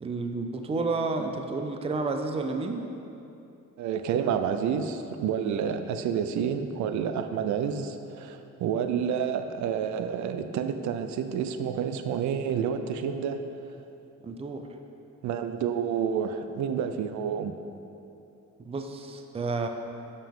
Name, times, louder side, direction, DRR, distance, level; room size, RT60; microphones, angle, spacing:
voice 1, 0.0-2.8 14.2-14.6 18.7-19.7, right 3 dB, 20° right, 5 dB, 0.4 m, -30 dB
voice 2, 3.8-13.4 15.2-17.5, right 7 dB, 70° right, 8 dB, 0.5 m, -29 dB
6.8 x 5.8 x 3.6 m, 2.7 s
cardioid pair, 90°, 30 cm